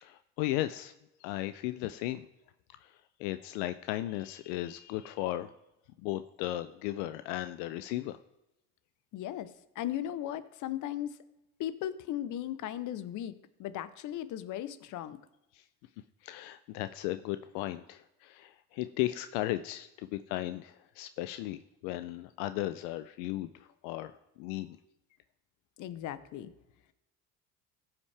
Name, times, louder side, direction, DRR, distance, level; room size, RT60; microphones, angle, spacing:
voice 1, 0.0-0.9 1.2-2.3 2.8-5.5 6.0-8.2 15.5-15.6 16.2-24.8, left 15 dB, 80° left, 11 dB, 0.5 m, -36 dB
voice 2, 9.1-9.5 9.8-11.2 11.6-13.3 13.6-15.2 25.8-26.5, left 12 dB, 55° left, 15 dB, 0.8 m, -37 dB
15.0 x 5.8 x 3.3 m, 0.92 s
supercardioid pair, 85°, 38 cm